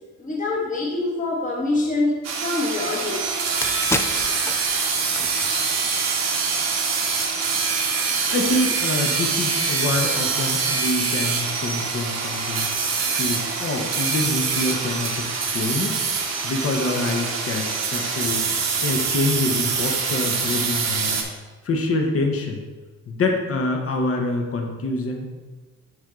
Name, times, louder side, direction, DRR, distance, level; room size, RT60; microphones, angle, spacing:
voice 1, 0.2-3.2, left 2 dB, 25° left, -3 dB, 1.3 m, -25 dB
sound 1, 2.2-21.2, right 5 dB, 60° right, 1.2 m, -24 dB
sound 2, 3.6-6.6 7.0-7.1, left 2 dB, 10° left, 0.3 m, -32 dB
voice 2, 8.3-12.7 13.1-16.0 16.4-21.2 21.6-22.6 23.1-25.3, left 2 dB, 50° left, 3 dB, 1.2 m, -26 dB
6.2 x 5.4 x 3.8 m, 1.3 s
cardioid pair, 90°, 30 cm